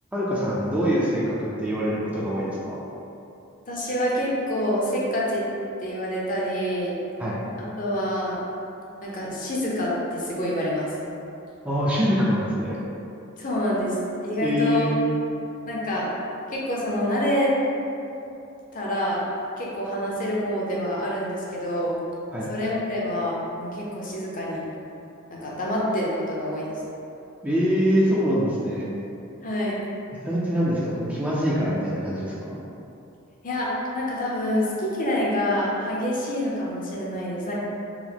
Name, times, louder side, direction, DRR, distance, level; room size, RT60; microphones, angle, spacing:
voice 1, 0.1-2.8 7.2-7.4 11.6-12.8 14.4-15.0 22.3-22.5 27.4-28.9 30.3-32.6, equal, 5° right, -8 dB, 0.5 m, -24 dB
voice 2, 3.7-5.4 5.8-6.9 7.8-8.4 9.0-10.9 13.4-14.0 14.2-14.9 15.7-16.1 16.5-17.5 18.7-19.2 19.6-22.0 22.5-24.6 25.3-26.7 29.4-29.8 33.4-37.5, equal, 40° left, -4 dB, 0.7 m, -27 dB
4.7 x 2.1 x 3.5 m, 2.8 s
head